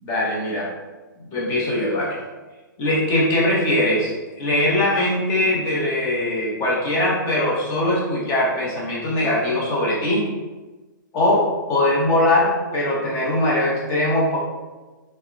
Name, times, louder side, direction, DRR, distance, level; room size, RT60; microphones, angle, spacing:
voice 1, 0.0-0.7 1.2-2.2 2.8-4.1 4.4-10.3 11.1-14.4, left 1 dB, 30° left, -5 dB, 0.8 m, -21 dB
2.6 x 2.1 x 2.4 m, 1.2 s
hypercardioid pair, 135°, 11 cm